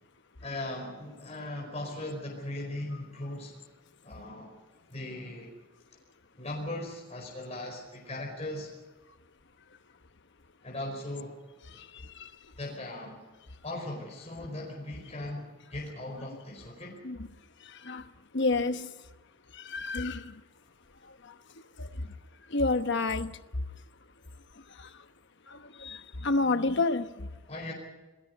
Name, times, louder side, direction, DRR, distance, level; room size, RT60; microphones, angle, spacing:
voice 1, 0.4-3.6 4.0-4.5 4.9-5.5 6.4-8.7 10.6-11.4 11.9-12.1 12.6-13.2 13.6-17.0 27.5-27.7, left 1 dB, 30° left, -1 dB, 4.9 m, -38 dB
voice 2, 11.7-12.3 17.0-17.2 17.6-18.0 18.3-18.9 19.5-20.4 21.2-21.3 21.8-22.1 22.5-23.3 24.8-24.9 25.5-27.3, left 3 dB, 55° left, 10 dB, 1.1 m, -30 dB
27.0 x 20.5 x 5.3 m, 1.2 s
head